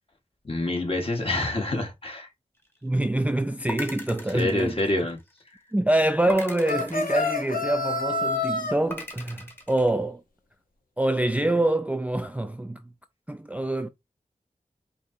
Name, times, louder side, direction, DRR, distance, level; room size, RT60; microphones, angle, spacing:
voice 1, 0.4-2.3 4.3-5.2, left 2 dB, 40° left, 1.4 m, -27 dB
voice 2, 2.8-4.8 5.7-10.2 11.0-12.8 13.3-13.9, right 1 dB, 10° right, 0.3 m, -25 dB
sound 1, 3.7-5.4 6.3-7.9 8.9-9.9, left 1 dB, 15° left, 1.1 m, -39 dB
sound 2, 6.6-8.7, left 2 dB, 90° left, 1.0 m, -27 dB
4.9 x 2.8 x 2.7 m
wide cardioid pair, 65°, 14 cm